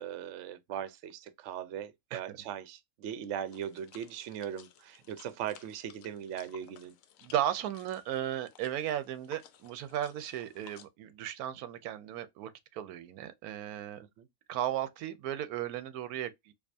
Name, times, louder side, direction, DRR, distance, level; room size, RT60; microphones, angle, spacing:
voice 1, 0.0-7.0 14.2-14.3, right 9 dB, 65° right, 0.8 m, -39 dB
sound 1, 3.5-10.9, left 9 dB, 70° left, 1.0 m, -58 dB
voice 2, 7.2-14.0 14.5-16.5, right 11 dB, 90° right, 1.1 m, -35 dB
4.7 x 2.4 x 2.6 m
omnidirectional pair, 1.5 m